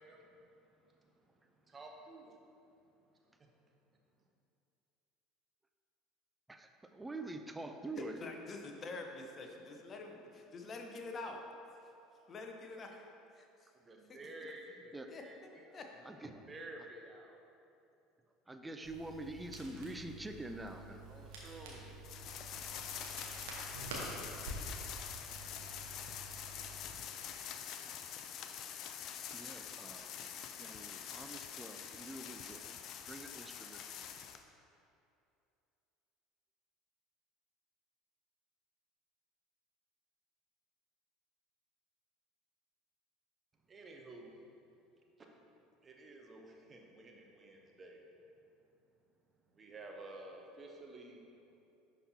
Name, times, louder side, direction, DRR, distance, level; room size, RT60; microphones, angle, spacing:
voice 1, 0.0-2.4 3.4-3.5 13.8-17.4 21.1-21.9 43.7-44.3 45.2-45.3 45.8-48.0 49.5-51.2, right 2 dB, 30° right, 1 dB, 0.8 m, -52 dB
voice 2, 6.5-8.2 14.9-15.1 16.0-16.3 18.5-21.1 29.3-30.2 30.5-33.8, right 2 dB, 15° right, 6 dB, 0.4 m, -46 dB
voice 3, 8.0-11.4 12.3-13.0 13.3-13.7 15.1-15.2 15.7-15.9, left 3 dB, 35° left, 2 dB, 0.8 m, -46 dB
Crackle, 18.8-26.8, right 2 dB, 70° right, 1.2 m, -48 dB
sound 1, 22.0-34.4, left 8 dB, 50° left, 0.4 m, -46 dB
10.5 x 4.2 x 2.8 m, 2.6 s
figure-of-eight pair, 70°, 0 cm